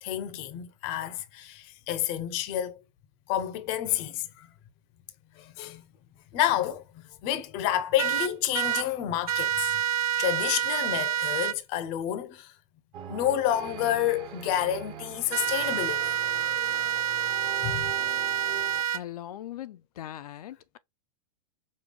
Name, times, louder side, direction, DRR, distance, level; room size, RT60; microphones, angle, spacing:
voice 1, 0.0-2.8 3.3-4.5 5.3-5.8 6.3-9.7 10.2-12.5 13.1-16.2 17.6-17.9, left 11 dB, 30° left, 0.5 m, -29 dB
sound 1, 8.0-8.8 9.3-11.5 15.3-19.0, right 11 dB, 70° right, 0.5 m, -28 dB
sound 2, 12.9-18.8, right 7 dB, 25° right, 0.7 m, -42 dB
voice 2, 18.9-20.8, left 12 dB, 80° left, 0.4 m, -40 dB
5.2 x 2.3 x 3.2 m
supercardioid pair, 155°, 19 cm